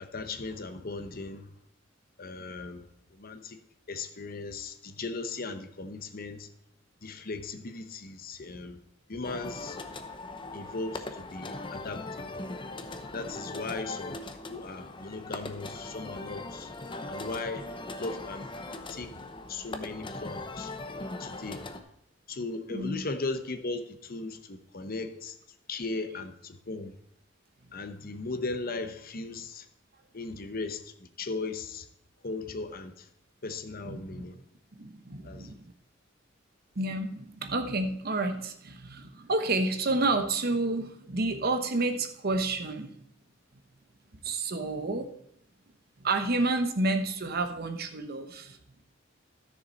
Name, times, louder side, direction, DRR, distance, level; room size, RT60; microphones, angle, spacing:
voice 1, 0.0-1.5 2.2-2.9 3.1-3.6 3.9-6.5 7.0-8.8 9.1-9.8 10.5-12.5 13.1-14.2 14.5-16.7 17.1-17.6 18.0-18.5 18.9-19.2 19.5-20.7 21.2-21.6 22.3-25.4 25.7-26.9 27.7-29.7 30.1-31.9 32.2-33.1 33.4-34.4 35.2-35.6, left 3 dB, 50° left, 8 dB, 0.9 m, -37 dB
sound 1, 9.2-21.8, left 2 dB, 25° left, 0.8 m, -40 dB
voice 2, 33.8-34.2 34.8-35.7 36.8-43.0 44.2-45.1 46.0-48.6, right 2 dB, 50° right, 7 dB, 1.0 m, -30 dB
13.0 x 6.8 x 4.1 m, 0.77 s
head